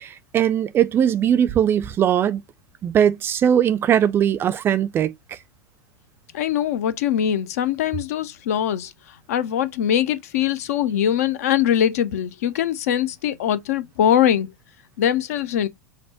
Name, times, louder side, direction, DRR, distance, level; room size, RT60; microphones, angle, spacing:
voice 1, 0.0-2.4 2.8-5.4, right 9 dB, 25° right, 0.3 m, -20 dB
voice 2, 6.3-8.9 9.3-14.5 15.0-15.7, left 10 dB, 55° left, 0.5 m, -22 dB
5.7 x 2.1 x 2.8 m
figure-of-eight pair, 85°, 10 cm